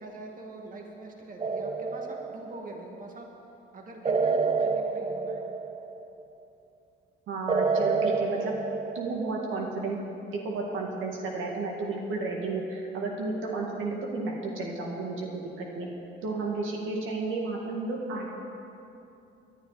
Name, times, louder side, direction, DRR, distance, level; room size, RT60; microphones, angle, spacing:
voice 1, 0.0-3.3 3.7-5.4, right 2 dB, 45° right, 0 dB, 2.2 m, -43 dB
sound 1, 1.4-2.8 4.0-6.2 7.5-9.6, right 4 dB, 25° right, 0.6 m, -28 dB
voice 2, 7.3-8.5 8.9-10.0 10.4-15.9 16.2-18.3, right 3 dB, 85° right, -1 dB, 2.0 m, -32 dB
19.5 x 11.5 x 4.2 m, 2.8 s
cardioid pair, 90°, 20 cm